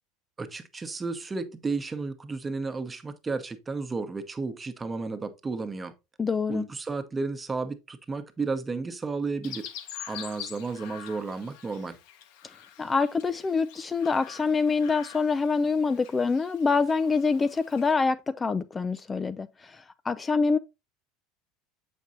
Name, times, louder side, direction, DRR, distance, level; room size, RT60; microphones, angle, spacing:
voice 1, 0.4-5.9 6.5-9.7 10.1-12.0, right 4 dB, 20° right, 0.9 m, -33 dB
voice 2, 6.2-6.7 12.8-20.6, left 4 dB, 20° left, 0.3 m, -26 dB
Chirp tweet, 9.4-17.9, left 9 dB, 70° left, 0.8 m, -45 dB
7.2 x 5.3 x 2.7 m
hypercardioid pair, 90°, 0 cm